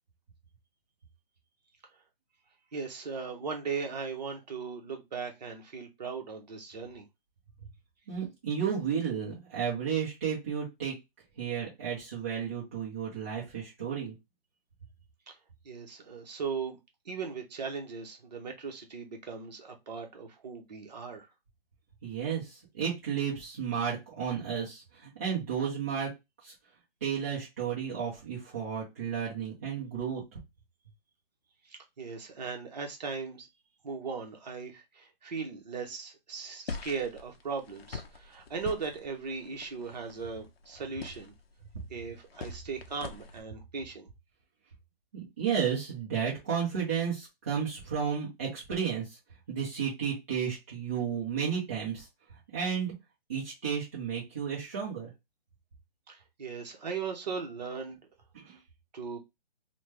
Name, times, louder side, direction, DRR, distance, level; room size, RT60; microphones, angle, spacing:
voice 1, 2.7-7.0 15.3-15.4 15.6-16.8 17.0-21.3 31.6-33.5 33.8-41.3 41.9-44.1 56.1-58.0 58.9-59.2, right 5 dB, 45° right, 0.9 m, -38 dB
voice 2, 8.1-10.9 11.4-14.1 22.0-26.1 26.4-26.5 27.0-30.2 45.1-49.2 49.5-52.1 52.5-52.9 53.3-55.1 58.3-58.6, right 7 dB, 15° right, 0.5 m, -32 dB
sound 1, 36.7-43.4, left 4 dB, 85° left, 0.7 m, -44 dB
3.1 x 2.1 x 3.2 m
hypercardioid pair, 160°, 29 cm